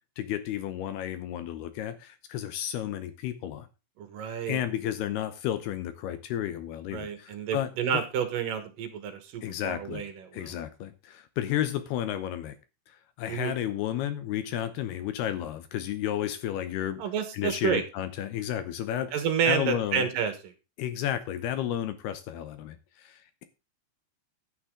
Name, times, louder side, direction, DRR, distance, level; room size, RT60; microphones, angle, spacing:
voice 1, 0.2-3.7 4.2-8.0 9.4-10.0 10.3-12.6 12.9-17.0 17.3-20.1 20.8-23.4, left 11 dB, 75° left, 11 dB, 2.6 m, -32 dB
voice 2, 4.0-4.6 6.9-10.5 13.3-13.6 17.0-17.8 19.1-20.5, right 7 dB, 65° right, 9 dB, 2.5 m, -30 dB
11.5 x 9.4 x 3.7 m, 0.30 s
omnidirectional pair, 5.2 m